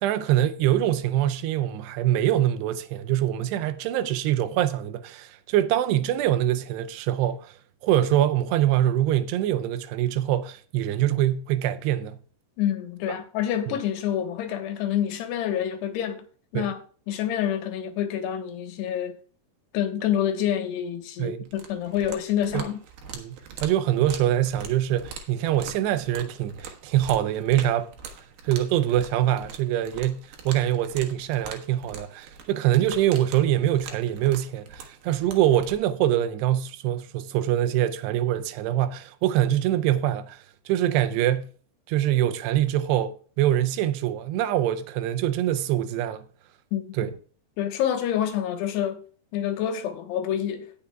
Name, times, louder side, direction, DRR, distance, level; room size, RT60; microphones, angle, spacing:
voice 1, 0.0-7.5 7.8-12.2 13.7-13.8 16.5-16.7 21.2-21.5 22.5-22.7 23.1-27.9 28.5-41.5 41.9-46.2 47.0-47.1, right 12 dB, 85° right, 2.9 m, -24 dB
voice 2, 12.6-16.3 16.5-16.8 17.1-19.2 19.7-22.8 46.7-46.8 47.6-49.0 49.3-50.7, left 10 dB, 85° left, 3.2 m, -27 dB
sound 1, 21.5-35.8, right 5 dB, 70° right, 2.9 m, -43 dB
18.0 x 7.0 x 2.3 m
omnidirectional pair, 4.8 m